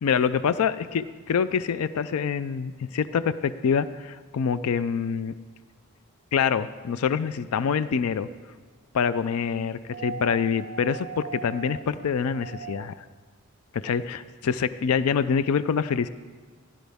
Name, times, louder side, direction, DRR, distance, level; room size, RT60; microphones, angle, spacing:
voice 1, 0.0-5.3 6.3-8.3 8.9-12.9 13.7-16.1, left 6 dB, 75° left, 14 dB, 0.4 m, -26 dB
sound 1, 9.8-13.1 14.5-14.6, right 6 dB, 45° right, 0.4 m, -39 dB
15.5 x 10.5 x 3.5 m, 1.4 s
head